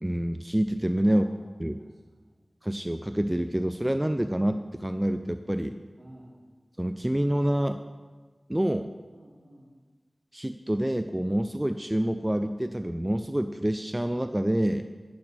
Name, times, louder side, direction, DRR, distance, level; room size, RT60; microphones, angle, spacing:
voice 1, 0.0-1.3 1.6-1.8 2.6-5.8 6.8-7.8 8.5-8.9 10.3-14.9, right 1 dB, 15° right, 8 dB, 0.4 m, -27 dB
voice 2, 1.0-2.4 6.0-6.5 9.1-9.8, right 1 dB, 65° right, -5 dB, 3.4 m, -54 dB
10.5 x 10.5 x 4.6 m, 1.4 s
wide cardioid pair, 55°, 0 cm